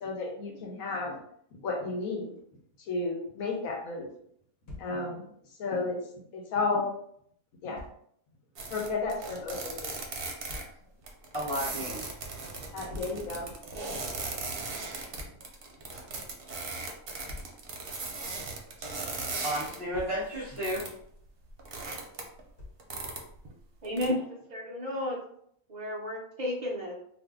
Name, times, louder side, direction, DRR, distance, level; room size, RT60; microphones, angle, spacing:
voice 1, 0.0-1.2 1.5-2.4 2.8-4.1 4.8-5.3 5.6-6.0 6.3-6.9 7.6-7.8 8.7-9.9 12.7-13.5, left 3 dB, 75° left, 1 dB, 1.2 m, -32 dB
Thump thud, 4.7-5.0 7.8-8.0 10.5-10.8 12.9-13.2 15.1-15.4 17.3-17.6 19.7-20.2 22.6-22.9, left 2 dB, 55° left, 1.1 m, -44 dB
sound 1, 8.6-10.6 11.0-19.8 20.1-21.0 21.3-22.4 22.8-23.5 23.8-24.1, right 3 dB, 55° right, 0.7 m, -38 dB
voice 2, 11.3-12.0 18.8-18.9 19.4-20.9, equal, 25° left, -6 dB, 0.8 m, -33 dB
voice 3, 23.8-25.2 25.7-26.9, left 1 dB, 75° right, -3 dB, 0.4 m, -32 dB
2.6 x 2.5 x 3.5 m, 0.68 s
omnidirectional pair, 1.5 m